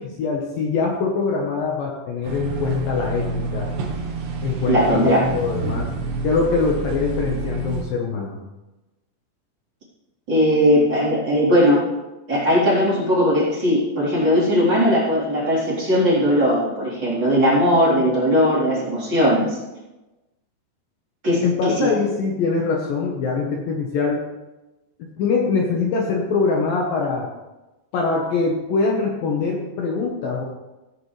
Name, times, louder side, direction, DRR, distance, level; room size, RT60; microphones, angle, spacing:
voice 1, 0.0-3.7 4.4-5.9 6.2-8.4 21.4-24.2 25.0-27.3 27.9-30.4, left 4 dB, 65° left, -1 dB, 2.6 m, -23 dB
sound 1, 2.2-7.8, right 3 dB, 80° right, 3.8 m, -28 dB
voice 2, 4.7-5.2 10.3-11.8 12.3-19.6 21.2-21.9, equal, 25° right, -8 dB, 4.1 m, -18 dB
17.0 x 9.3 x 3.3 m, 1.1 s
omnidirectional pair, 4.9 m